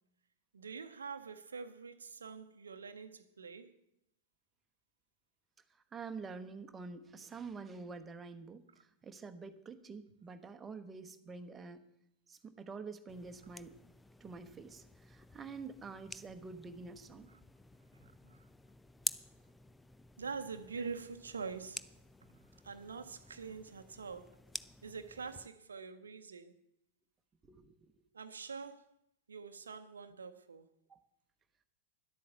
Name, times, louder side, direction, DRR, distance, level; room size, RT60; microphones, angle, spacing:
voice 1, 0.5-3.7 18.0-18.4 20.2-21.9 22.6-24.3 24.8-26.5 28.1-28.9 29.3-30.7, right 5 dB, 70° right, 0.7 m, -45 dB
voice 2, 5.7-11.8 12.3-13.8 14.2-17.3 27.5-27.9 30.9-31.0, right 4 dB, 15° right, 1.0 m, -47 dB
sound 1, 13.1-25.5, left 2 dB, 10° left, 0.4 m, -49 dB
11.5 x 8.4 x 7.1 m
figure-of-eight pair, 90°, 0 cm